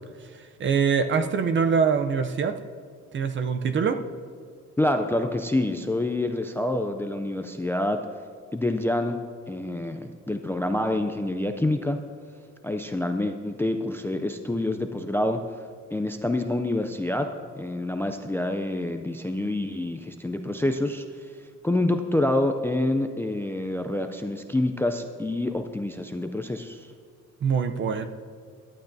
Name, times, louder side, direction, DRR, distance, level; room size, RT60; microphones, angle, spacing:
voice 1, 0.6-2.5 3.1-4.0 27.4-28.1, right 6 dB, 40° right, 9 dB, 0.5 m, -23 dB
voice 2, 4.8-8.0 8.5-9.2 9.5-12.0 12.6-15.6 15.9-17.3 17.6-26.9, left 1 dB, 10° left, 7 dB, 0.3 m, -27 dB
17.5 x 11.5 x 2.7 m, 2.1 s
cardioid pair, 170°, 29 cm